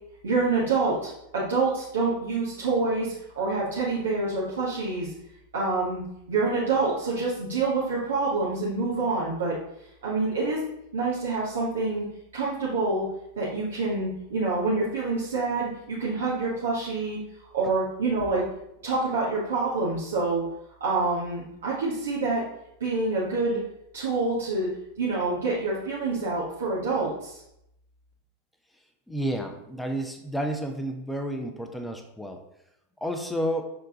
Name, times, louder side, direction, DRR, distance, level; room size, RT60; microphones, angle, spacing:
voice 1, 0.2-5.1 5.5-6.0 6.3-9.5 10.0-10.6 10.9-12.0 12.3-13.0 13.3-17.2 17.5-18.4 18.8-20.4 20.8-22.4 22.8-23.6 23.9-24.7 25.0-27.4, right 3 dB, 65° right, -7 dB, 1.5 m, -27 dB
voice 2, 29.1-32.4 33.0-33.7, equal, 5° left, 4 dB, 0.7 m, -31 dB
6.1 x 4.5 x 3.8 m, 0.81 s
figure-of-eight pair, 90°, 0 cm